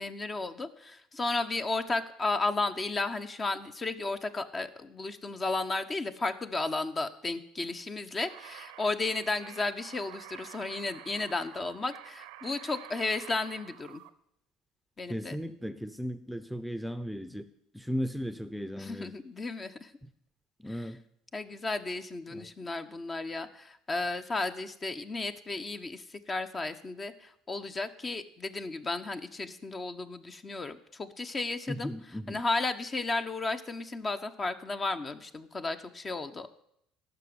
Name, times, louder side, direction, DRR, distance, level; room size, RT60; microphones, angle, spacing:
voice 1, 0.0-14.0 15.0-15.4 18.8-19.9 20.7-20.9 21.3-31.9 32.3-36.5, left 3 dB, 30° left, 9 dB, 1.0 m, -34 dB
sound 1, 8.2-14.1, right 14 dB, 75° right, 0.7 m, -49 dB
voice 2, 15.1-17.4 17.7-19.1 20.0-20.1 20.6-21.0 22.3-22.5 31.7-32.4, equal, ahead, 11 dB, 0.8 m, -36 dB
12.5 x 6.1 x 9.5 m, 0.75 s
hypercardioid pair, 65°, 0 cm